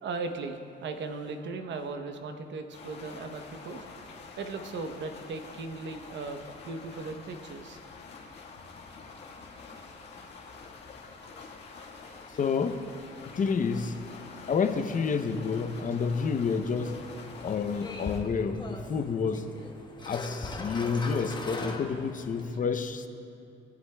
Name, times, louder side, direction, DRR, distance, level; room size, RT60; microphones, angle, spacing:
voice 1, 0.0-7.8 9.7-9.8 10.4-10.6 11.4-11.5, right 3 dB, 65° right, 6 dB, 0.9 m, -38 dB
sound 1, 2.7-18.2, left 4 dB, 60° left, 1.6 m, -47 dB
voice 2, 12.4-12.8 13.3-14.0 14.5-17.0 17.4-19.4 20.1-23.1, left 5 dB, 40° left, 8 dB, 0.6 m, -29 dB
sound 2, 16.7-22.4, left 2 dB, 20° left, 1.1 m, -40 dB
18.5 x 7.8 x 2.2 m, 2.7 s
cardioid pair, 90°, 20 cm